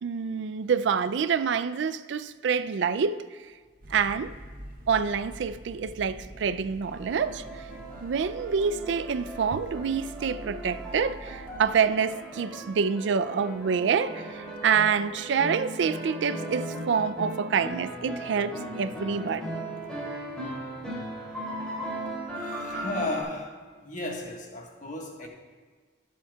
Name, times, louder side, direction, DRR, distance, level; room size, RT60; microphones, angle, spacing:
voice 1, 0.0-3.2 3.9-4.3 4.9-7.4 8.0-19.5, right 6 dB, 70° right, 0.4 m, -27 dB
sound 1, 3.8-11.7, equal, 50° right, 0.9 m, -45 dB
sound 2, 7.0-23.2, right 1 dB, 5° left, 2.9 m, -37 dB
voice 2, 22.3-23.6 23.8-25.3, left 2 dB, 45° left, 1.4 m, -34 dB
18.5 x 7.0 x 2.3 m
head